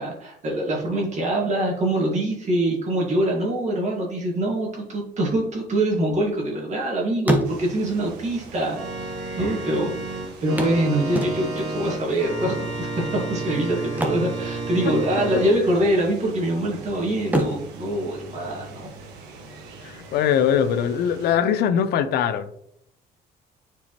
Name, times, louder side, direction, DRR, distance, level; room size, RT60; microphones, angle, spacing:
voice 1, 0.0-18.9, right 1 dB, 45° right, 1.7 m, -24 dB
sound 1, 5.9-6.8 7.1-8.0 8.9-9.0 9.2-9.3 10.6-11.8 13.8-15.1 15.4-15.6 16.1-16.8 17.2-19.0 21.0-21.1 21.5-21.6, right 1 dB, 10° right, 1.1 m, -28 dB
sound 2, 7.4-21.4, right 3 dB, 90° right, 1.4 m, -43 dB
Organ, 8.7-15.6, right 3 dB, 65° right, 1.9 m, -31 dB
voice 2, 19.8-22.5, left 8 dB, 75° left, 0.5 m, -21 dB
7.1 x 4.6 x 2.9 m
cardioid pair, 110°, 17 cm